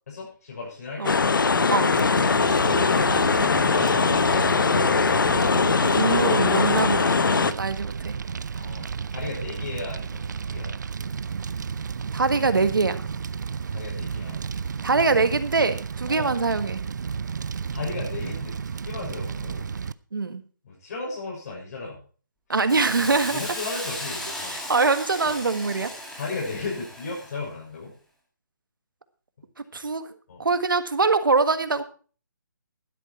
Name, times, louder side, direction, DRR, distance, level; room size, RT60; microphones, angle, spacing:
voice 1, 0.1-1.7 2.6-5.2 8.5-10.8 13.7-15.1 16.1-16.3 17.7-18.6 18.8-19.7 20.6-22.0 23.0-24.6 25.2-25.3 26.1-27.9 30.3-30.4, left 3 dB, 50° left, -3 dB, 6.4 m, -35 dB
sound 1, 1.0-7.5, left 4 dB, 80° left, 0.9 m, -21 dB
Fire, 1.9-19.9, right 6 dB, 60° right, 0.6 m, -32 dB
voice 2, 5.8-8.1 12.1-13.1 14.8-16.8 20.1-20.4 22.5-23.4 24.5-25.9 29.7-30.1 30.4-31.8, right 4 dB, 90° right, 11 dB, 1.7 m, -23 dB
Hiss, 22.7-27.4, left 1 dB, 5° left, 1.6 m, -36 dB
12.0 x 10.5 x 4.5 m, 0.38 s
hypercardioid pair, 165°, 11 cm